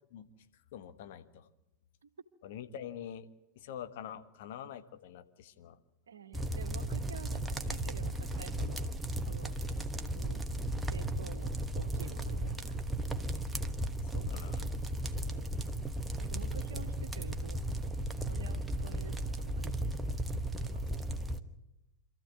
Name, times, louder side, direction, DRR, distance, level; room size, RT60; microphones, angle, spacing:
voice 1, 0.1-1.5 2.4-3.3 3.5-5.8 14.0-14.6, left 9 dB, 50° left, 9 dB, 1.4 m, -46 dB
voice 2, 6.1-8.9 9.3-9.6 10.1-10.4 10.9-12.8 15.2-15.6 16.2-17.8 18.3-19.8 20.6-21.0, right 6 dB, 70° right, 10 dB, 1.5 m, -50 dB
sound 1, 6.3-21.4, right 1 dB, 10° right, 1.3 m, -35 dB
26.5 x 14.0 x 9.4 m, 0.92 s
figure-of-eight pair, 90°, 0 cm